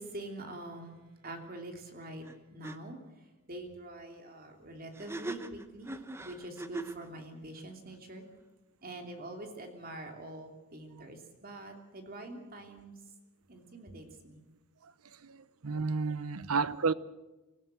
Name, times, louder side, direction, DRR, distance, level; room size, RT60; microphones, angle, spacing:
voice 1, 0.0-5.9 6.2-8.2 8.8-12.9 13.5-14.4 16.4-16.5, right 1 dB, 40° right, 3.0 m, -45 dB
sound 1, 2.2-2.4 2.6-2.8 4.9-7.1, right 2 dB, 10° right, 0.9 m, -40 dB
voice 2, 15.2-16.9, right 4 dB, 85° right, 0.8 m, -31 dB
25.0 x 15.5 x 7.7 m
head